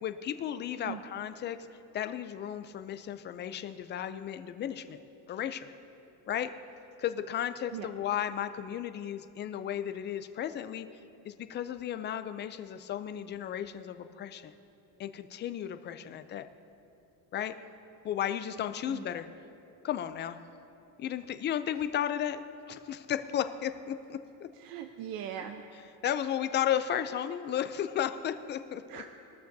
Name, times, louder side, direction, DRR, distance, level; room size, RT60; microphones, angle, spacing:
voice 1, 0.0-1.6 1.9-5.0 5.3-5.7 6.3-6.5 7.0-10.9 11.2-14.5 15.0-16.5 17.3-17.5 18.0-19.3 19.8-20.4 21.0-22.4 22.7-24.5 26.0-29.0, left 10 dB, 30° left, 10 dB, 0.4 m, -34 dB
voice 2, 24.5-25.7 28.9-29.1, right 10 dB, 60° right, 6 dB, 0.7 m, -40 dB
21.5 x 13.0 x 2.7 m, 2.8 s
cardioid pair, 155°, 41 cm